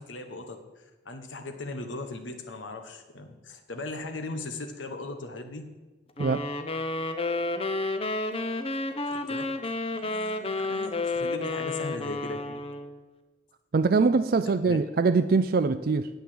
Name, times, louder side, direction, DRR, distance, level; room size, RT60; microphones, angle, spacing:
voice 1, 0.0-5.7 9.1-9.5 10.0-12.6 14.4-14.8, left 2 dB, 85° left, 6 dB, 1.3 m, -38 dB
sound 1, 6.2-13.0, left 2 dB, 30° left, 0.8 m, -31 dB
voice 2, 13.7-16.1, right 4 dB, 50° right, 10 dB, 0.4 m, -23 dB
9.3 x 8.5 x 7.8 m, 1.2 s
head